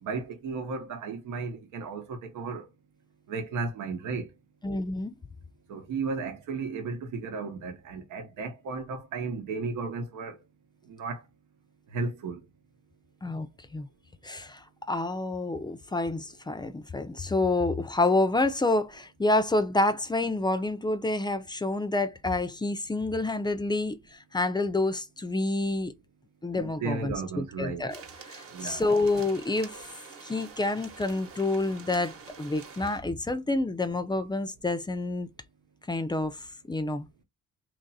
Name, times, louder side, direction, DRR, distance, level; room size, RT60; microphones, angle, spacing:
voice 1, 0.0-2.7 3.3-4.3 5.7-10.4 10.8-11.2 11.9-12.4 26.5-27.9 28.5-28.8, right 4 dB, 85° right, 1.0 m, -34 dB
voice 2, 4.6-5.2 13.2-13.5 13.7-13.9 14.2-25.9 26.4-28.0 28.3-29.8 30.2-35.3 35.9-36.4 36.7-37.1, left 2 dB, 15° left, 0.4 m, -28 dB
sound 1, 27.9-33.0, right 5 dB, 50° right, 1.1 m, -47 dB
3.0 x 2.6 x 4.0 m
cardioid pair, 90°, 30 cm